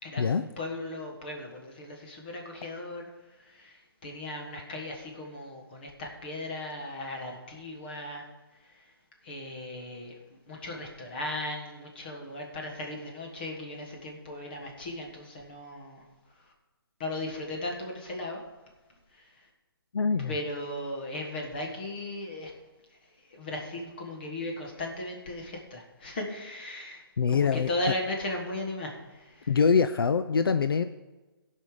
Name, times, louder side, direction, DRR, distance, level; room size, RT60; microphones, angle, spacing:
voice 1, 0.0-3.1 3.4-8.2 9.2-10.1 10.5-16.0 17.0-18.4 19.1-19.2 20.2-22.5 23.4-29.5, left 1 dB, 25° left, 1 dB, 1.5 m, -37 dB
voice 2, 19.9-20.3 27.2-27.7 29.5-30.8, left 5 dB, 70° left, 10 dB, 0.5 m, -24 dB
17.0 x 5.6 x 4.9 m, 1.2 s
hypercardioid pair, 175°, 12 cm